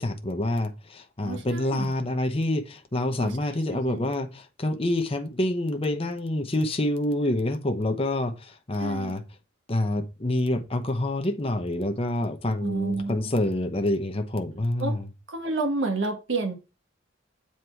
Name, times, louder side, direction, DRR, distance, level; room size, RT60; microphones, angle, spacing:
voice 1, 0.0-9.2 9.7-15.0, left 1 dB, 30° left, 0.9 m, -27 dB
voice 2, 1.2-1.9 3.2-3.4 3.7-4.1 8.8-9.2 12.6-13.3 14.8-15.0 15.3-16.5, right 3 dB, 65° right, 1.4 m, -30 dB
8.0 x 4.2 x 4.5 m
head